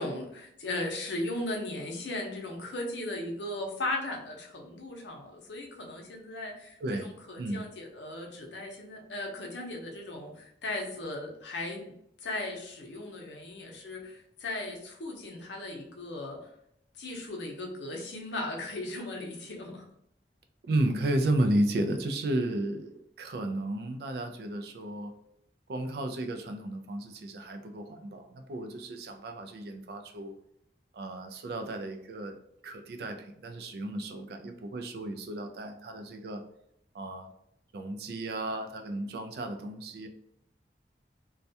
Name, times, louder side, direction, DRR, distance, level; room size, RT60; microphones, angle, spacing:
voice 1, 0.0-11.9 12.2-16.5 17.0-19.8, left 2 dB, 80° left, 1 dB, 0.6 m, -37 dB
voice 2, 6.8-7.7 20.6-25.1 25.7-30.4 30.9-32.4 32.6-36.4 36.9-37.3 37.7-40.1, right 1 dB, 60° right, 6 dB, 0.3 m, -33 dB
2.3 x 2.2 x 2.7 m, 0.71 s
head